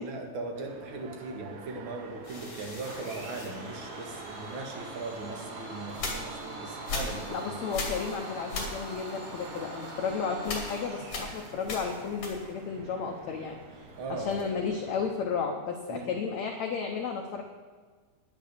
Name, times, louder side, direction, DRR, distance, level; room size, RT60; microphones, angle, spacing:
voice 1, 0.0-7.5 14.0-14.3 15.9-16.1, right 3 dB, 50° right, 2 dB, 1.5 m, -39 dB
sound 1, 0.5-15.2, right 4 dB, 85° right, 3.5 m, -47 dB
sound 2, 2.2-4.5 5.1-12.8 13.1-14.7, left 3 dB, 40° left, 2.7 m, -40 dB
Domestic sounds home sounds, 2.8-11.5, right 1 dB, 65° right, 4.0 m, -43 dB
voice 2, 7.3-17.4, left 5 dB, 85° left, 2 dB, 1.5 m, -33 dB
11.0 x 9.6 x 6.8 m, 1.5 s
omnidirectional pair, 4.6 m